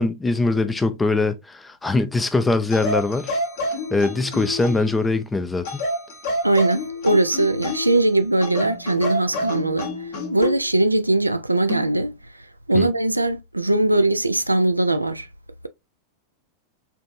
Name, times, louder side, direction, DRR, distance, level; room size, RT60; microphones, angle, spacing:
voice 1, 0.0-3.4 3.9-5.8 12.7-12.9, left 3 dB, 10° left, 0.4 m, -22 dB
sound 1, 2.7-5.0 5.6-8.0 8.4-10.6 11.7-11.9, left 1 dB, 55° left, 1.2 m, -28 dB
voice 2, 6.4-12.2 12.7-15.3, right 2 dB, 85° right, 0.3 m, -20 dB
4.4 x 2.6 x 2.5 m
figure-of-eight pair, 90°, 0 cm